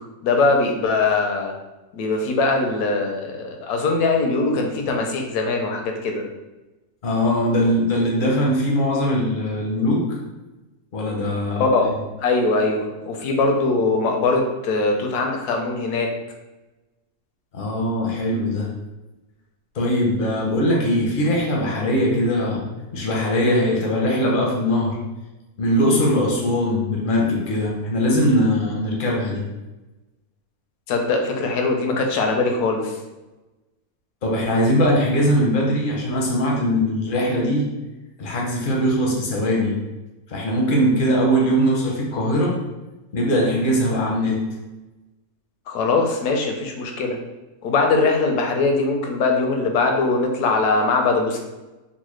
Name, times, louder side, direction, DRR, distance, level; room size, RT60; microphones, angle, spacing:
voice 1, 0.2-1.5 1.9-6.2 11.6-11.9 12.2-16.1 30.9-33.0 45.7-47.2 47.6-51.4, left 3 dB, 80° left, 3 dB, 1.1 m, -21 dB
voice 2, 7.0-10.2 10.9-11.9 17.5-18.7 19.7-22.6 22.9-25.0 25.6-29.4 34.2-37.6 38.2-39.8 40.3-42.6 43.1-44.4, equal, 55° left, -2 dB, 0.6 m, -21 dB
3.9 x 2.1 x 3.1 m, 1.1 s
omnidirectional pair, 1.6 m